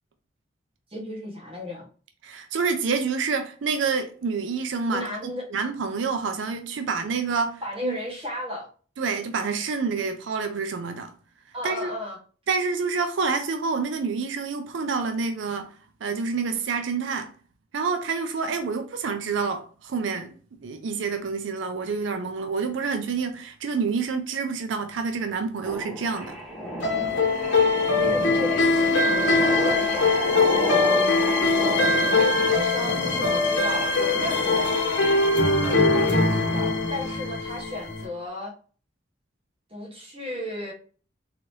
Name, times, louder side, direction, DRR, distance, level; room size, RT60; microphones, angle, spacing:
voice 1, 0.9-1.8 4.9-5.4 7.6-8.7 11.5-12.2 27.6-27.7 28.0-31.8 32.1-35.1 35.6-38.5 39.7-40.7, left 1 dB, 30° right, 1.3 m, -34 dB
voice 2, 2.2-5.0 5.5-7.9 9.0-11.1 11.6-11.9 12.5-15.7 16.0-17.3 17.7-20.3 20.6-26.4, right 5 dB, 90° right, 0.5 m, -28 dB
sound 1, 25.7-35.6, equal, ahead, 0.8 m, -33 dB
sound 2, 26.8-38.1, left 3 dB, 80° left, 0.9 m, -22 dB
3.9 x 2.8 x 3.1 m
head